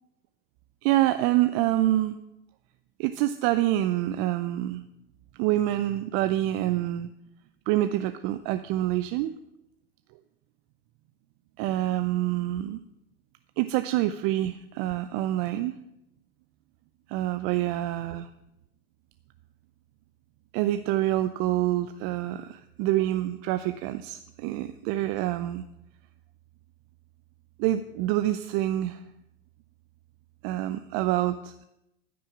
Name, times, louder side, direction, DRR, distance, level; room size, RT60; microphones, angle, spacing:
voice 1, 0.8-2.2 3.0-4.8 5.3-7.1 7.7-9.3 11.6-12.8 13.6-15.8 17.1-18.3 20.5-25.6 27.6-29.0 30.4-31.7, right 14 dB, 50° right, 11 dB, 0.6 m, -26 dB
13.5 x 6.3 x 6.0 m, 0.85 s
hypercardioid pair, 100°, 31 cm